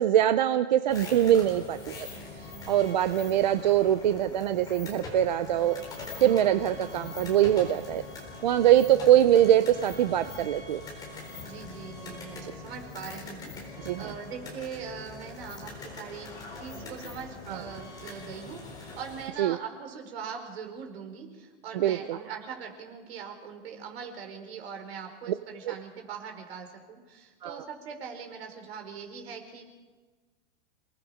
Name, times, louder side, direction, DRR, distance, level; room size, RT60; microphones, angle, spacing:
voice 1, 0.0-2.1 2.7-5.8 6.2-8.0 8.4-10.8 12.4-12.5 13.8-14.1 17.5-17.6 19.4-19.6 21.7-22.2 25.7-25.8 27.4-27.6, right 11 dB, 40° right, 11 dB, 0.5 m, -23 dB
sound 1, 0.9-19.3, left 3 dB, 10° left, 4.2 m, -42 dB
voice 2, 11.4-16.3 16.6-29.7, right 6 dB, 55° right, 4 dB, 4.9 m, -41 dB
30.0 x 19.0 x 5.0 m, 1.3 s
supercardioid pair, 175°, 36 cm